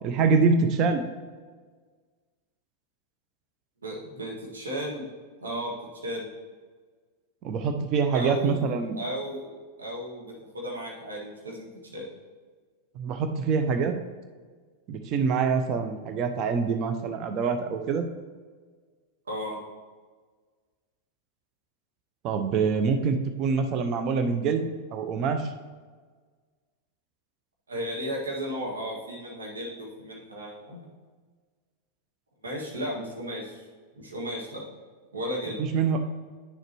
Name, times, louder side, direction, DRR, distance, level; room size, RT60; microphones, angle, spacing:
voice 1, 0.0-1.0 7.4-9.0 13.0-14.0 14.9-18.1 22.2-25.5 35.6-36.0, right 5 dB, 35° right, 7 dB, 0.7 m, -25 dB
voice 2, 3.8-5.1 5.4-5.7 6.0-6.3 8.1-9.5 9.8-12.1 19.3-19.6 27.7-30.9 32.4-33.6 34.0-34.6 35.1-35.6, equal, 70° right, -3 dB, 1.9 m, -34 dB
9.6 x 6.6 x 3.0 m, 1.5 s
figure-of-eight pair, 90°, 0 cm